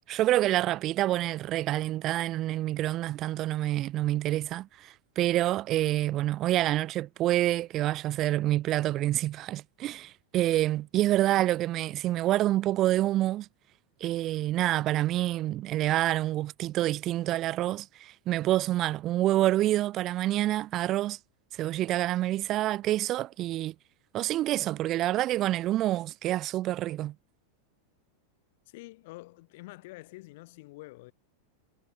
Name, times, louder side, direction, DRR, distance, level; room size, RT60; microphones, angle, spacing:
voice 1, 0.1-13.5 14.0-21.2 21.6-23.7 24.1-27.1, right 14 dB, 35° right, 0.4 m, -27 dB
voice 2, 28.7-31.1, left 21 dB, 50° left, 5.1 m, -47 dB
figure-of-eight pair, 90°, 0 cm